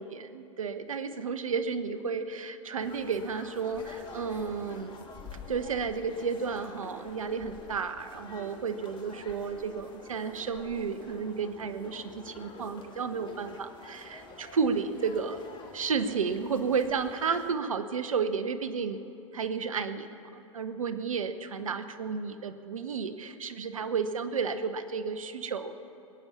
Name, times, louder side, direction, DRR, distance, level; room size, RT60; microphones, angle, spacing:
voice 1, 0.0-5.0 5.5-15.4 15.7-19.0 19.3-25.7, right 5 dB, 85° right, 10 dB, 0.9 m, -32 dB
sound 1, 2.8-17.5, left 3 dB, 30° left, 2.1 m, -48 dB
21.5 x 8.8 x 6.9 m, 3.0 s
hypercardioid pair, 100°, 17 cm